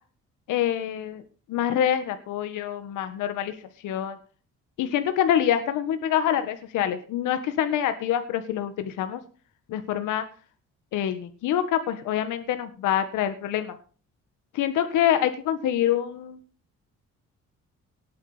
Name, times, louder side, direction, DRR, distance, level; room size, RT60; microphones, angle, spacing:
voice 1, 0.5-1.2 1.5-3.5 3.8-4.2 4.8-9.2 9.7-10.2 10.9-13.7 14.5-16.4, left 10 dB, 90° left, 10 dB, 1.6 m, -26 dB
19.5 x 8.5 x 5.1 m, 0.39 s
cardioid pair, 90°, 30 cm